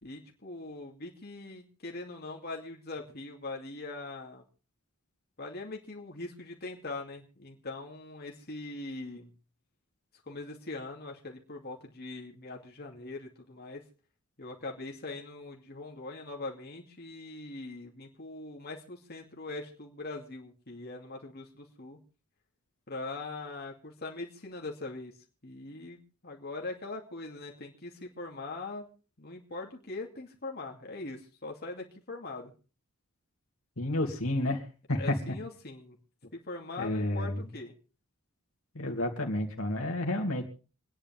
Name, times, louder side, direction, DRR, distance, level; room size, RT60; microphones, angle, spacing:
voice 1, 0.0-4.4 5.4-9.3 10.2-13.8 14.4-22.0 22.9-25.1 25.4-28.9 29.2-32.5 34.9-36.0 36.2-37.7, left 2 dB, 45° left, 1 dB, 2.6 m, -41 dB
voice 2, 33.8-34.6 34.9-35.2 36.8-37.4 38.7-40.4, left 1 dB, 75° left, 2 dB, 2.7 m, -30 dB
28.0 x 10.0 x 3.6 m, 0.36 s
head